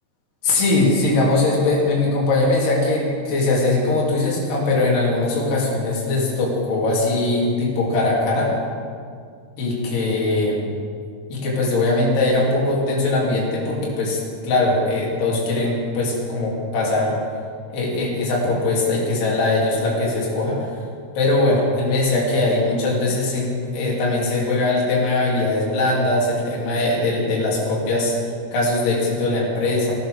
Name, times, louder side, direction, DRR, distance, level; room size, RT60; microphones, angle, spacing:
voice 1, 0.4-8.5 9.6-10.7 11.3-14.2 14.4-17.1 17.7-20.6 21.1-28.2 28.5-29.9, left 2 dB, 75° left, -5 dB, 5.1 m, -21 dB
17.0 x 11.5 x 6.5 m, 2.2 s
omnidirectional pair, 4.7 m